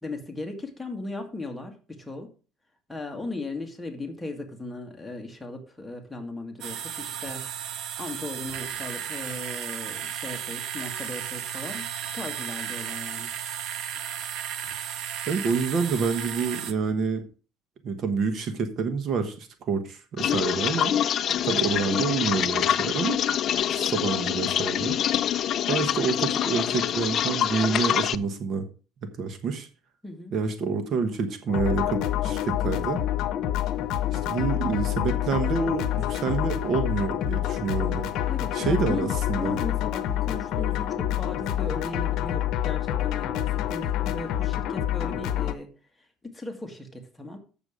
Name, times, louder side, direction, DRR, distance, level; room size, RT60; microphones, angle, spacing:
voice 1, 0.0-2.3 2.9-11.9 12.1-13.3 21.3-21.6 30.0-30.3 38.3-45.7 46.2-47.4, left 2 dB, 5° left, 3 dB, 1.8 m, -37 dB
sound 1, 6.6-16.7, right 9 dB, 70° right, 0.9 m, -34 dB
voice 2, 15.3-17.2 17.8-20.9 21.4-23.2 23.7-25.0 25.7-28.6 29.0-29.7 30.3-33.0 34.1-38.1 38.5-39.6, right 5 dB, 50° right, 8 dB, 1.2 m, -28 dB
sound 2, 20.2-28.2, left 10 dB, 50° left, 0.4 m, -25 dB
sound 3, 31.5-45.5, left 12 dB, 65° left, 0.8 m, -27 dB
8.0 x 6.9 x 5.0 m, 0.36 s
cardioid pair, 130°, 0 cm